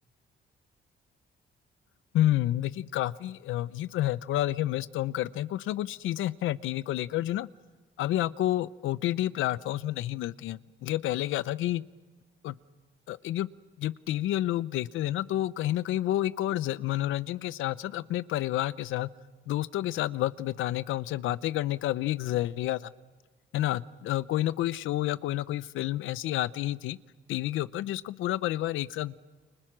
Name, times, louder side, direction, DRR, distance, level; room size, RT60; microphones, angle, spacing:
voice 1, 2.1-7.5 8.0-11.8 12.4-12.5 13.1-13.5 13.8-19.1 19.5-22.9 23.5-27.0 27.3-29.1, left 14 dB, 90° left, 17 dB, 0.7 m, -29 dB
29.5 x 25.0 x 6.2 m, 1.3 s
cardioid pair, 90°, 20 cm